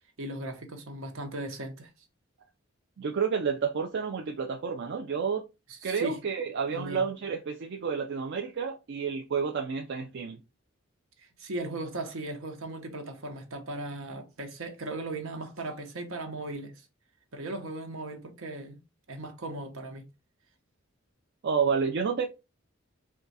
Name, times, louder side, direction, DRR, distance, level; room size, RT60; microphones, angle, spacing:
voice 1, 0.2-1.9 5.7-6.2 6.7-7.0 11.2-16.9 17.3-18.8 19.1-20.0, right 2 dB, 85° right, 0.9 m, -37 dB
voice 2, 3.0-5.4 5.8-10.4 21.4-22.3, right 6 dB, 60° right, 0.4 m, -30 dB
3.6 x 2.3 x 4.0 m
head